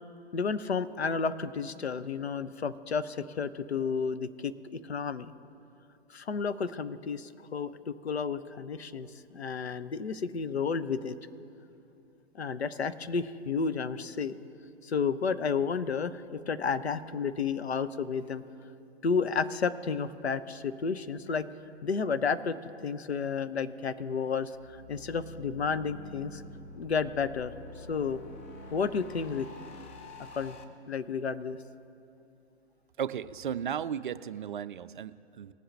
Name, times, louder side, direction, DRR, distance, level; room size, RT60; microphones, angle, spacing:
voice 1, 0.3-5.3 6.1-11.2 12.3-14.4 14.8-18.4 19.0-21.5 21.8-22.6 22.8-26.4 26.8-28.2 28.7-29.5 30.4-30.6 30.9-31.6, left 5 dB, 70° left, 12 dB, 0.7 m, -32 dB
sound 1, 24.5-30.6, left 2 dB, 15° left, 0.3 m, -48 dB
voice 2, 33.0-35.5, right 8 dB, 50° right, 14 dB, 0.4 m, -35 dB
20.5 x 7.7 x 3.3 m, 2.7 s
figure-of-eight pair, 120°, 33 cm